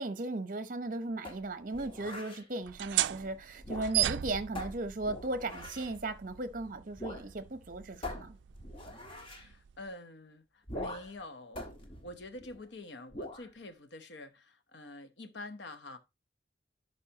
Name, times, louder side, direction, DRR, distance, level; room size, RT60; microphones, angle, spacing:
voice 1, 0.0-8.4, right 2 dB, 45° right, 0.8 m, -37 dB
sound 1, 1.2-2.5 3.6-4.2 4.6-6.0 7.0-7.3 7.5-7.6 8.0-9.5 10.7-11.2 11.6-12.7 13.1-13.5, left 1 dB, 30° left, 1.3 m, -43 dB
sound 2, 2.6-9.9, right 14 dB, 75° right, 0.3 m, -37 dB
voice 2, 9.3-11.7 12.0-16.0, left 2 dB, 75° left, 0.9 m, -47 dB
11.5 x 4.8 x 2.8 m
head